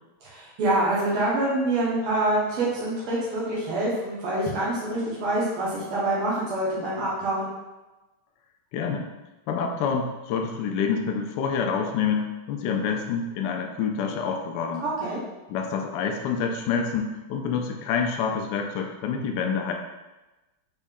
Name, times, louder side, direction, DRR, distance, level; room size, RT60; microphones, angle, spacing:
voice 1, 0.2-7.5 14.8-15.2, right 1 dB, 80° right, -7 dB, 1.9 m, -26 dB
voice 2, 8.7-9.1 9.5-14.9 15.5-19.7, left 6 dB, 75° left, 3 dB, 1.0 m, -27 dB
5.1 x 2.7 x 3.6 m, 1.1 s
omnidirectional pair, 2.4 m